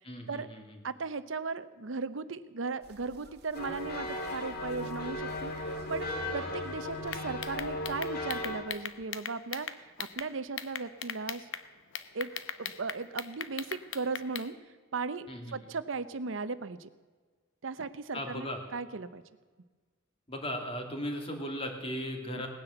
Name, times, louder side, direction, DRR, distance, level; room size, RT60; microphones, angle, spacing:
voice 1, 0.0-0.8 15.3-15.7 18.1-18.6 20.3-22.5, equal, 30° left, 3 dB, 2.5 m, -37 dB
voice 2, 0.8-11.5 12.1-12.3 12.6-14.5 14.9-16.9 17.6-19.2 22.3-22.4, right 4 dB, 85° right, 13 dB, 0.8 m, -37 dB
sound 1, 2.8-7.9, right 3 dB, 55° right, 1.4 m, -52 dB
sound 2, 3.5-8.6, left 1 dB, 55° left, 2.3 m, -36 dB
sound 3, 7.1-10.3 10.6-11.6 11.9-14.5, left 8 dB, 80° left, 0.9 m, -38 dB
18.0 x 10.0 x 7.8 m, 1.4 s
head